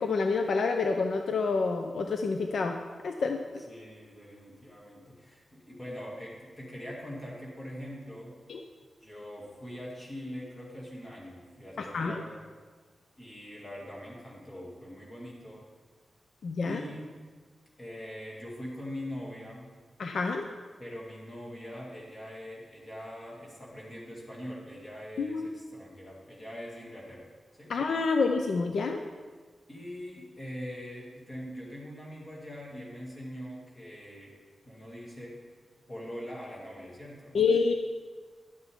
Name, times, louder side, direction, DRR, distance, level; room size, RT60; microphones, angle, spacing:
voice 1, 0.0-2.8 3.0-3.4 8.5-8.6 11.8-12.2 16.4-16.8 20.0-20.5 25.2-25.5 27.7-29.0 37.3-37.7, left 4 dB, 70° left, 4 dB, 0.5 m, -28 dB
voice 2, 3.5-8.4 9.0-12.4 13.2-15.6 16.6-17.0 17.8-19.7 20.8-27.3 27.6-27.7 29.7-34.3 34.6-35.4 35.9-37.4, equal, 25° left, -4 dB, 2.5 m, -42 dB
11.0 x 8.1 x 3.6 m, 1.5 s
wide cardioid pair, 130°, 0 cm